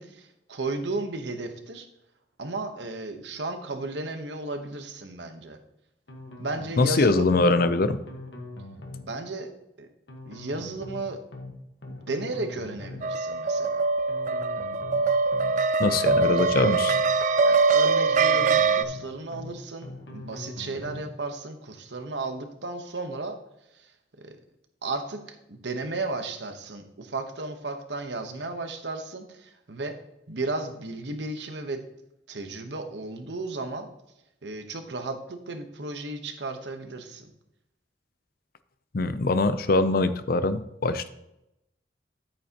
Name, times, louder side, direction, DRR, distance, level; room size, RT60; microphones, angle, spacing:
voice 1, 0.0-1.9 2.4-5.6 6.4-7.3 9.1-9.5 9.8-9.9 10.2-11.2 11.9-13.9 16.0-16.1 17.4-23.4 23.7-23.9 24.2-24.4 24.8-29.9 30.3-31.8 32.3-33.9 34.4-37.3, right 2 dB, 80° right, 7 dB, 1.1 m, -34 dB
sound 1, 6.1-7.0 7.3-7.5 7.8-9.1 10.1-11.0 11.3-11.5 11.8-13.1 14.1-15.0 15.3-15.5 15.8-17.1 18.1-19.0 19.3-19.5 19.8-21.1, left 2 dB, 90° left, 1.5 m, -41 dB
voice 2, 6.8-8.0 15.8-17.0 38.9-41.1, left 3 dB, 55° left, 12 dB, 0.6 m, -23 dB
sound 2, 13.0-18.8, right 4 dB, 45° right, 0.4 m, -23 dB
9.8 x 8.8 x 2.9 m, 0.86 s
head